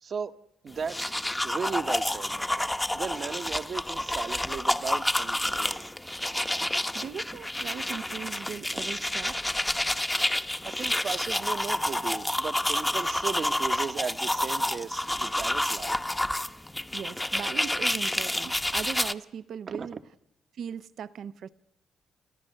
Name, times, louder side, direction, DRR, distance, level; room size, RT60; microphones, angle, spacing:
voice 1, 0.0-0.3 0.6-1.1 1.4-5.9 10.6-16.0 19.7-19.9, right 6 dB, 50° right, 1.2 m, -36 dB
sound 1, 0.7-19.1, left 1 dB, 10° left, 0.9 m, -29 dB
voice 2, 6.9-9.5 16.9-20.0 20.5-21.5, right 8 dB, 70° right, 0.8 m, -39 dB
29.5 x 14.0 x 6.6 m
cardioid pair, 90°, 0 cm